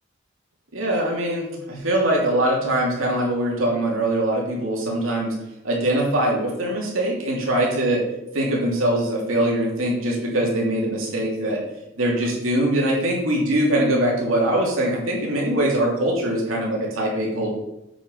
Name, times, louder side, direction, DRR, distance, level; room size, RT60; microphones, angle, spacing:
voice 1, 0.7-5.3 5.6-8.0 8.3-11.6 12.0-17.5, right 1 dB, 85° right, -2 dB, 2.8 m, -22 dB
8.1 x 6.8 x 5.5 m, 0.89 s
head